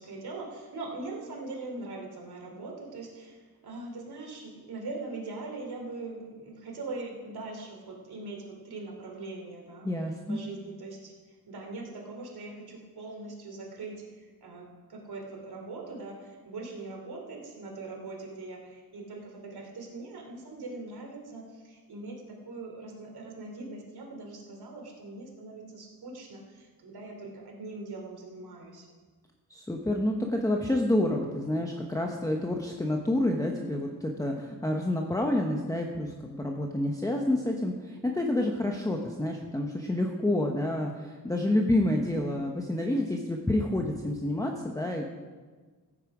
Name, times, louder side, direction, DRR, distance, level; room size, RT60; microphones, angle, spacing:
voice 1, 0.0-9.9 10.3-11.1 11.5-28.9, right 3 dB, 85° right, 0 dB, 2.9 m, -41 dB
voice 2, 9.8-10.4 29.5-45.1, left 1 dB, 10° left, 1 dB, 0.8 m, -28 dB
15.0 x 8.8 x 4.9 m, 1.4 s
wide cardioid pair, 145°, 37 cm